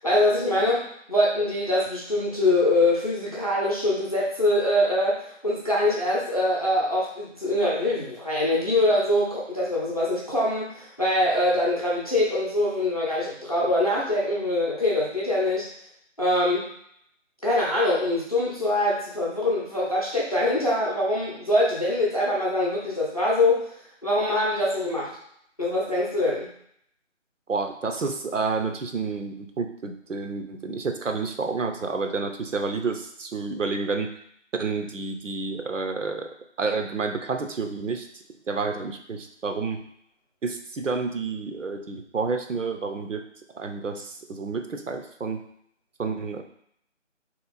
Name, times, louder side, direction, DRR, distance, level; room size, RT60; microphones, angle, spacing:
voice 1, 0.0-15.7 16.2-16.7 17.4-23.7 24.0-25.2 25.6-26.5, left 1 dB, 30° left, -6 dB, 0.6 m, -24 dB
voice 2, 27.5-34.1 34.6-36.3 36.6-38.1 38.5-39.8 40.4-43.2 43.5-45.4 46.0-46.4, right 4 dB, 80° right, 6 dB, 0.7 m, -29 dB
3.3 x 2.9 x 4.0 m, 0.70 s
figure-of-eight pair, 160°, 37 cm